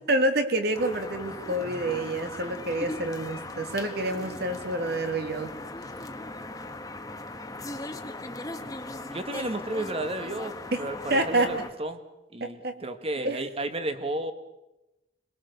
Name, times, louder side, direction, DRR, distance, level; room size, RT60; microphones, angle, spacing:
voice 1, 0.1-5.5 10.7-11.6 12.4-12.8 13.2-13.4, right 1 dB, 60° right, 6 dB, 2.5 m, -28 dB
sound 1, 0.7-11.7, left 2 dB, 20° left, 1.4 m, -38 dB
voice 2, 9.1-12.0 12.3-14.3, right 1 dB, 30° right, 9 dB, 1.7 m, -33 dB
26.5 x 22.0 x 6.8 m, 1.0 s
head